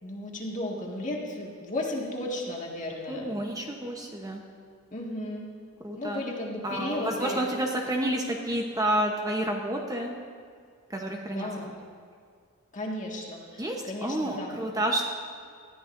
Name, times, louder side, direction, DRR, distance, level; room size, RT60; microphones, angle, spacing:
voice 1, 0.0-3.3 4.9-5.5 6.0-7.4 11.3-11.8 12.7-14.5, left 1 dB, 35° left, -2 dB, 1.9 m, -34 dB
voice 2, 3.1-4.4 5.8-6.2 6.6-10.1 10.9-11.5 13.6-15.1, right 1 dB, 15° right, 1 dB, 0.9 m, -29 dB
19.5 x 13.0 x 2.6 m, 2.2 s
head